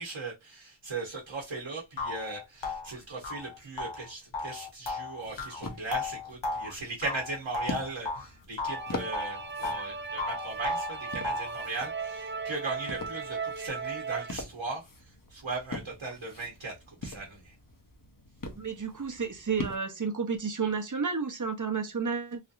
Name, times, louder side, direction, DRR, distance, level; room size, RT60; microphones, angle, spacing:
voice 1, 0.0-14.8 15.3-17.5, right 3 dB, 85° right, 1.0 m, -38 dB
sound 1, 1.4-1.5 2.0-8.3 8.6-9.9 10.2-11.6, left 3 dB, 75° left, 0.9 m, -35 dB
sound 2, 5.2-19.8, left 2 dB, 45° left, 0.9 m, -43 dB
sound 3, 8.7-14.3, right 5 dB, 25° right, 0.4 m, -37 dB
voice 2, 18.6-22.4, right 5 dB, 45° right, 0.8 m, -31 dB
3.3 x 2.7 x 2.4 m
wide cardioid pair, 40°, 45 cm